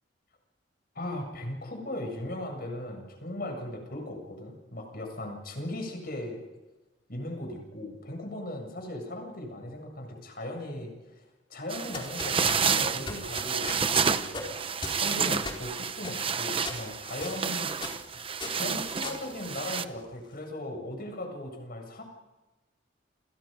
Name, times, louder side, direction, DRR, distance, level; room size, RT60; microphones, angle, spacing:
voice 1, 0.9-6.4 7.1-11.2 11.5-14.4 14.9-17.9 18.1-22.0, left 1 dB, 50° left, 4 dB, 7.7 m, -38 dB
sound 1, 11.7-19.9, right 6 dB, 30° right, 0.9 m, -30 dB
sound 2, 11.9-20.1, left 3 dB, 25° left, 4.5 m, -40 dB
29.5 x 29.0 x 5.4 m, 1.1 s
head